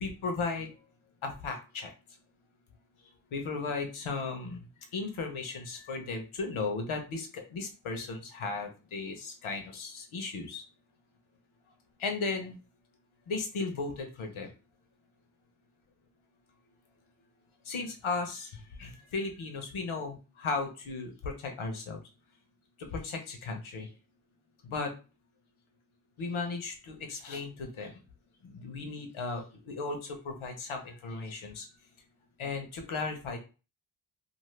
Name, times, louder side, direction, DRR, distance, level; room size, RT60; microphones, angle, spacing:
voice 1, 0.0-0.7 1.2-1.9 3.3-4.6 4.9-10.6 12.0-12.6 13.3-14.5 17.6-22.0 22.8-23.9 24.6-24.9 26.2-28.0 28.4-31.7 32.4-33.4, left 4 dB, 85° left, 4 dB, 0.9 m, -36 dB
2.6 x 2.5 x 3.2 m, 0.33 s
wide cardioid pair, 120°, 47 cm